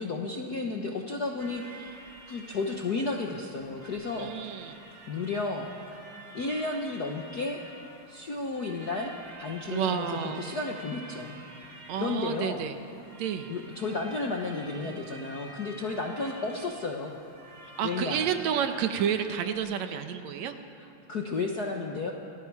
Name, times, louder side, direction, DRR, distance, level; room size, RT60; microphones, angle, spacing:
voice 1, 0.0-2.0 2.3-4.3 5.1-5.7 6.3-7.6 8.1-9.1 9.4-11.4 12.0-12.6 13.5-17.2 17.8-18.2 20.8-22.1, left 3 dB, 80° left, 1 dB, 0.8 m, -33 dB
sound 1, 1.4-19.6, right 2 dB, 25° right, 2.5 m, -49 dB
voice 2, 4.2-4.8 9.7-10.5 11.9-12.8 13.2-13.5 17.8-20.6, right 8 dB, 70° right, 7 dB, 2.1 m, -30 dB
27.5 x 19.5 x 4.8 m, 2.5 s
omnidirectional pair, 3.5 m